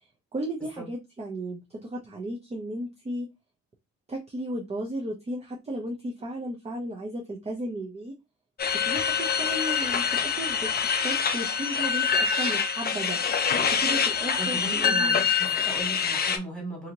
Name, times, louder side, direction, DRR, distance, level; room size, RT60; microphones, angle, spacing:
voice 1, 0.3-3.3 4.1-8.1 8.7-13.2 13.7-15.2, right 1 dB, 20° right, -1 dB, 0.5 m, -35 dB
sound 1, 8.6-16.4, left 6 dB, 35° left, 0.4 m, -25 dB
voice 2, 14.3-16.9, right 1 dB, 5° left, -1 dB, 1.6 m, -37 dB
2.7 x 2.6 x 2.7 m, 0.23 s
cardioid pair, 110°, 29 cm